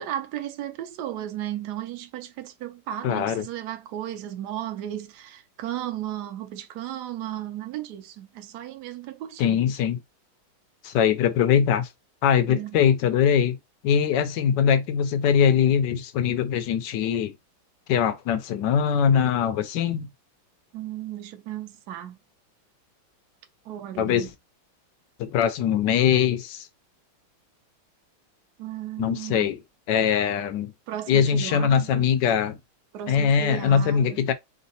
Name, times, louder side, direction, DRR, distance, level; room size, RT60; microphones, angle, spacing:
voice 1, 0.0-9.6 12.5-12.8 20.7-22.1 23.6-24.3 28.6-29.5 30.9-32.1 32.9-34.3, right 12 dB, 65° right, 1.1 m, -35 dB
voice 2, 3.0-3.4 9.4-10.0 10.8-11.9 12.2-13.6 13.8-17.3 17.9-20.1 24.0-24.3 25.2-26.7 29.0-29.6 29.9-30.7 31.1-32.6 33.1-34.3, left 8 dB, 70° left, 1.1 m, -22 dB
4.0 x 3.7 x 2.7 m
omnidirectional pair, 2.3 m